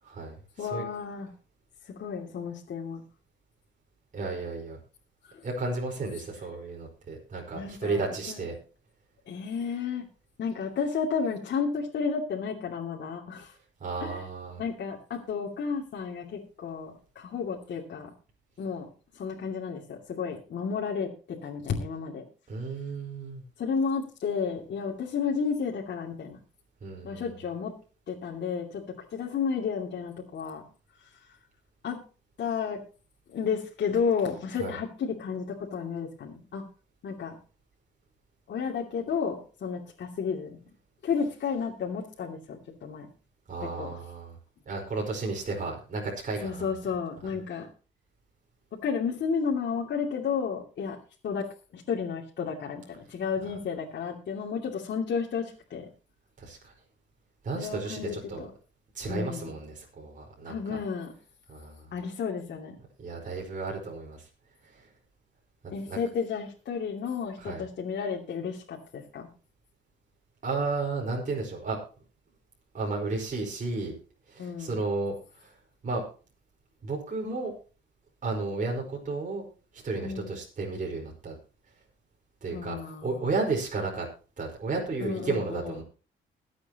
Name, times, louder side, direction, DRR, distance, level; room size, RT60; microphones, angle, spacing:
voice 1, 0.0-0.8 4.1-4.8 5.4-8.6 13.8-14.6 22.5-23.4 26.8-27.3 34.6-34.8 43.5-44.4 44.7-46.7 56.4-56.7 57.4-58.4 58.9-60.8 61.5-61.9 63.0-64.3 64.6-64.9 65.9-66.0 67.4-67.6 70.4-71.8 72.7-73.9 74.3-75.5 75.8-76.0 76.8-77.5 78.2-79.4 79.7-81.4 82.4-84.1 84.4-85.8, right 3 dB, 40° right, -1 dB, 4.8 m, -33 dB
voice 2, 0.6-1.3 1.8-3.0 7.5-8.0 8.3-8.4 9.3-10.1 10.4-13.5 14.0-14.2 14.6-18.1 18.6-18.9 19.1-22.2 23.6-26.4 27.0-27.7 28.1-28.8 29.1-30.6 31.8-32.0 32.4-32.8 33.3-36.6 37.0-37.4 38.5-40.6 41.0-43.1 43.8-43.9 46.4-47.7 48.8-51.0 51.2-51.5 51.7-55.9 57.6-58.5 59.1-59.5 60.5-61.1 61.9-62.8 65.7-69.3 74.4-74.8 80.0-80.3 82.5-83.3 85.0-85.7, left 6 dB, 60° left, -2 dB, 2.6 m, -32 dB
21.5 x 8.3 x 3.0 m, 0.36 s
cardioid pair, 90°, 20 cm